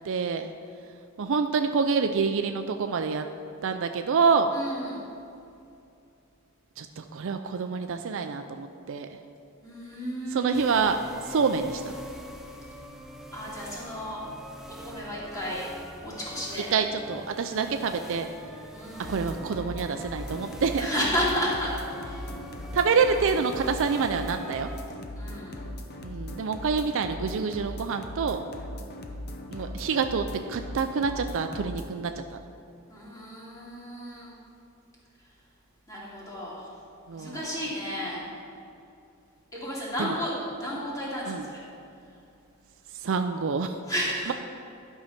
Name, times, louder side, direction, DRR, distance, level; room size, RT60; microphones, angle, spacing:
voice 1, 0.1-0.5 1.2-3.2 3.6-4.5 6.8-9.1 10.3-11.9 16.7-18.3 19.1-20.9 22.7-24.7 26.0-28.4 29.5-32.4 37.1-37.4 40.0-40.1 41.3-41.5 43.0-43.8, right 5 dB, 65° right, 7 dB, 0.4 m, -27 dB
voice 2, 4.5-5.0 9.6-10.5 13.3-14.2 14.7-15.6 16.0-16.7 18.7-19.4 20.8-21.7 22.0-22.3 25.2-25.6 32.9-34.3 35.9-36.7 37.1-38.3 39.5-40.3 40.6-41.6 43.9-44.3, equal, 15° left, -7 dB, 2.7 m, -32 dB
sound 1, 10.5-24.9, equal, ahead, 0.7 m, -44 dB
sound 2, 19.0-31.9, left 1 dB, 50° left, 0.8 m, -39 dB
11.5 x 5.6 x 5.8 m, 2.6 s
head